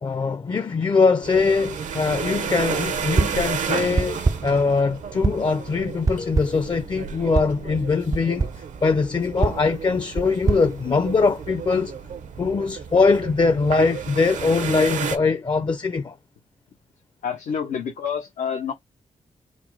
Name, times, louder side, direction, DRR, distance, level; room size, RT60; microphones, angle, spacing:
voice 1, 0.0-8.5 8.8-11.9 12.4-16.2, left 4 dB, 35° left, 0.5 m, -22 dB
sound 1, 1.2-15.2, right 7 dB, 80° right, 0.8 m, -32 dB
sound 2, 3.2-3.5 4.0-4.6 5.2-5.6 6.1-6.7 7.3-7.6 8.1-8.7 9.4-11.5, right 4 dB, 25° right, 0.3 m, -25 dB
sound 3, 6.2-7.3, left 3 dB, 75° left, 1.2 m, -41 dB
voice 2, 17.2-18.7, left 7 dB, 90° left, 0.8 m, -28 dB
4.0 x 2.2 x 4.6 m
cardioid pair, 70°, 13 cm